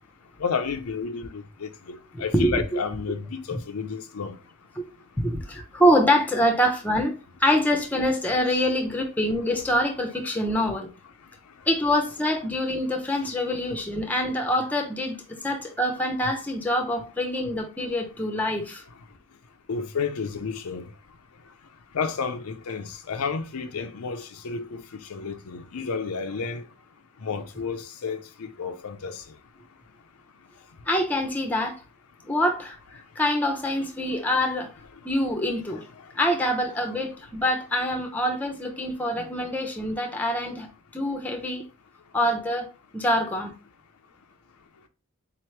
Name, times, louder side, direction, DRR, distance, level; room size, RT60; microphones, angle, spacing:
voice 1, 0.4-4.4 13.2-13.3 19.7-20.9 21.9-24.8 25.1-26.6 27.2-29.2 35.7-35.8, left 5 dB, 85° left, 0.5 m, -31 dB
voice 2, 2.1-2.8 3.5-3.6 5.2-7.1 7.4-10.9 11.7-18.8 30.9-31.8 32.2-34.7 35.0-35.8 36.2-40.7 40.9-41.6 42.1-42.7 42.9-43.5, equal, 10° left, 0.7 m, -25 dB
4.1 x 3.0 x 3.1 m
head